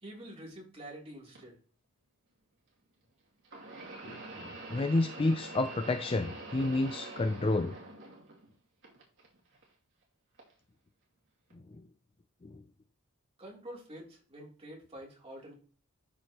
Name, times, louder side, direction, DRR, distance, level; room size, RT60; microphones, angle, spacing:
voice 1, 0.0-1.6 13.4-15.5, right 1 dB, 30° right, 3.2 m, -47 dB
sound 1, 1.3-1.4 3.4-8.5 8.8-9.6 10.4-10.5 11.5-11.6, right 2 dB, 60° right, 2.6 m, -45 dB
voice 2, 4.7-7.8 12.4-12.6, left 2 dB, 25° left, 0.4 m, -29 dB
12.5 x 4.7 x 2.9 m
head